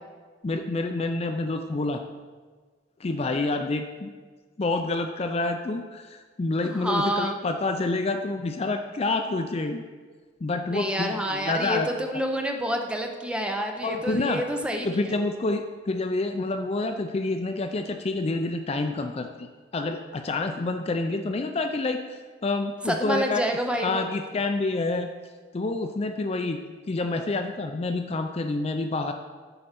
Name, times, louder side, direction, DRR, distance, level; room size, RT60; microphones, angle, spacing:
voice 1, 0.4-2.0 3.0-4.1 4.6-9.8 10.4-11.9 13.8-14.4 14.8-19.5 19.7-23.4 23.8-25.1 25.5-29.1, left 2 dB, 35° left, 6 dB, 0.4 m, -28 dB
voice 2, 6.6-7.4 10.7-15.2 22.9-24.1, equal, 5° right, 3 dB, 0.7 m, -28 dB
7.9 x 5.2 x 5.7 m, 1.5 s
head